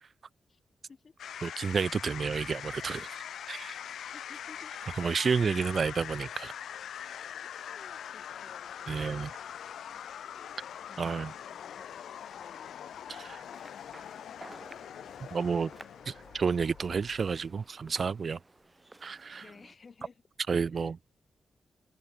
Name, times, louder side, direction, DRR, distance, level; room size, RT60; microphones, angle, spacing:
sound 1, 1.2-17.6, left 9 dB, 80° left, 1.3 m, -43 dB
voice 1, 1.4-3.8 5.0-6.5 8.9-9.3 11.0-11.3 13.1-13.4 15.2-15.7 16.1-18.4 19.0-19.4 20.5-21.0, right 5 dB, 55° right, 0.4 m, -31 dB
voice 2, 4.0-4.8 7.4-9.3 10.9-11.9 12.3-12.8 15.5-15.7 19.4-20.2 20.5-20.9, left 5 dB, 50° left, 5.2 m, -56 dB
sound 2, 13.4-19.7, right 2 dB, 25° right, 3.4 m, -54 dB
open air
supercardioid pair, 55°, 0 cm